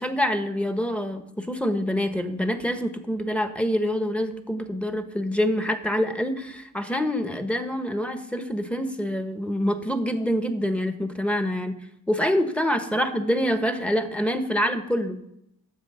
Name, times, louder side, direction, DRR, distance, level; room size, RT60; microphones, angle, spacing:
voice 1, 0.0-11.8 12.1-15.2, equal, 5° left, 7 dB, 1.3 m, -26 dB
10.5 x 7.3 x 5.7 m, 0.79 s
cardioid pair, 65°, 34 cm